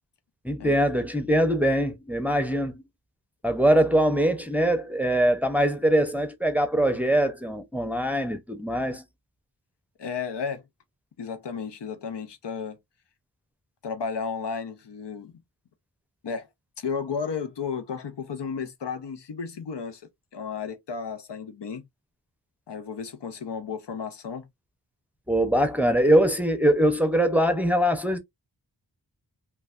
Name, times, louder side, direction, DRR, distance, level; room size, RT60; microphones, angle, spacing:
voice 1, 0.4-2.8 3.4-9.0 25.3-28.2, right 1 dB, 5° right, 0.6 m, -22 dB
voice 2, 10.0-10.6 11.2-12.8 13.8-15.3 16.2-16.5 16.8-20.0 20.3-21.9 22.7-24.5, left 6 dB, 80° left, 0.7 m, -33 dB
3.2 x 2.3 x 2.4 m
wide cardioid pair, 50°, 42 cm